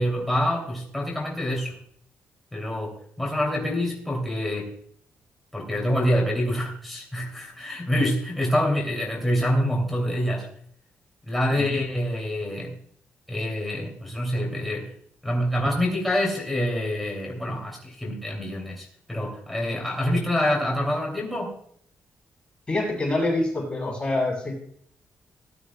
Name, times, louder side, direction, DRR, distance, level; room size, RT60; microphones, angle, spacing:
voice 1, 0.0-1.8 2.5-4.7 5.5-10.5 11.3-12.8 13.3-14.9 15.2-21.6, equal, ahead, -3 dB, 2.7 m, -26 dB
voice 2, 11.5-11.8 22.7-24.6, left 2 dB, 20° left, -3 dB, 5.9 m, -26 dB
18.0 x 12.0 x 2.2 m, 0.63 s
cardioid pair, 110°, 5 cm